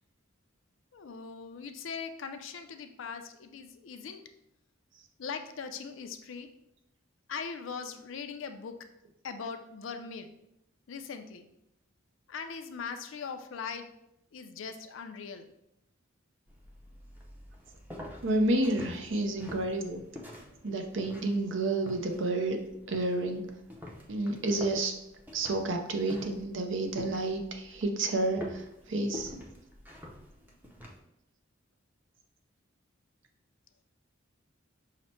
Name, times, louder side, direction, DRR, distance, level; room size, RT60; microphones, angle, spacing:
voice 1, 0.9-4.2 5.2-6.5 7.3-8.8 9.2-10.3 10.9-11.4 12.3-13.9 14.3-15.5, left 5 dB, 70° left, 7 dB, 0.4 m, -40 dB
sound 1, 16.5-31.0, equal, 10° right, 0.6 m, -47 dB
voice 2, 18.2-20.0 20.6-22.6 22.9-23.4 24.1-24.9 25.3-29.3, right 2 dB, 65° right, 3 dB, 0.6 m, -30 dB
5.7 x 2.1 x 4.3 m, 0.83 s
head